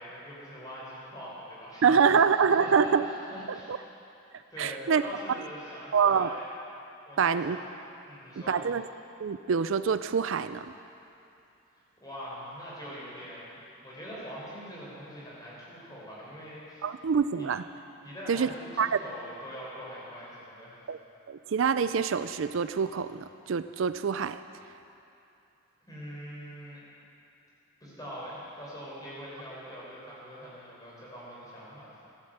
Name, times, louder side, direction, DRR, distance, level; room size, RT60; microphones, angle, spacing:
voice 1, 0.0-2.2 2.5-3.8 4.5-6.4 7.0-7.7 8.0-8.6 12.0-13.5 13.8-16.9 17.3-17.5 18.0-20.8 25.8-26.8 27.8-31.9, equal, 20° left, -7 dB, 5.0 m, -43 dB
voice 2, 1.8-3.1 3.5-3.8 4.6-5.0 5.9-6.4 7.2-7.6 8.5-8.8 9.2-10.7 16.8-17.6 18.3-18.5 18.8-19.0 20.9-21.0 21.3-24.4, right 6 dB, 65° right, 12 dB, 0.4 m, -25 dB
15.0 x 12.0 x 7.9 m, 2.7 s
head